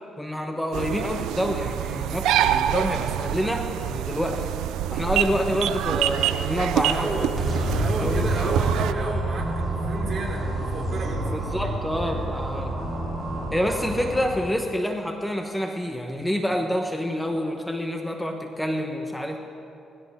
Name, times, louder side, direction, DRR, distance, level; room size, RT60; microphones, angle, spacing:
voice 1, 0.2-4.5 4.9-7.3 8.0-8.6 11.3-12.8 13.5-19.4, equal, 5° left, 4 dB, 1.0 m, -27 dB
sound 1, 0.7-8.9, right 11 dB, 90° right, 0.4 m, -26 dB
voice 2, 6.6-11.3, right 2 dB, 50° right, -1 dB, 3.3 m, -32 dB
sound 2, 7.4-14.2, right 1 dB, 30° right, 3.9 m, -28 dB
19.0 x 17.0 x 3.6 m, 2.7 s
cardioid pair, 90°, 0 cm